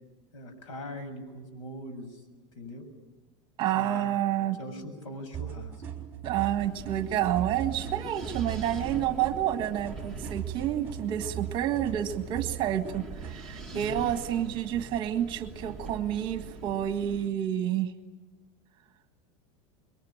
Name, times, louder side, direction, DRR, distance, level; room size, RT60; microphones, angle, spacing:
voice 1, 0.3-2.2 2.6-2.8 3.7-4.1 4.6-5.7 13.7-14.5, equal, 85° left, 8 dB, 7.1 m, -41 dB
voice 2, 3.6-4.6 6.2-17.9, right 11 dB, 30° right, 8 dB, 1.7 m, -29 dB
sound 1, 5.3-13.4, right 9 dB, 10° right, 3.5 m, -39 dB
Wind, 6.6-17.3, right 2 dB, 5° left, 1.5 m, -43 dB
26.5 x 23.0 x 8.9 m, 1.2 s
supercardioid pair, 170°, 16 cm